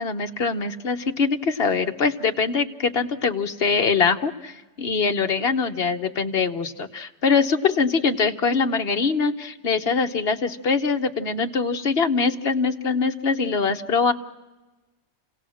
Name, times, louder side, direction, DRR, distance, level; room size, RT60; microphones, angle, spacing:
voice 1, 0.0-14.1, left 5 dB, 55° left, 6 dB, 1.2 m, -23 dB
29.5 x 17.5 x 6.3 m, 1.1 s
omnidirectional pair, 1.3 m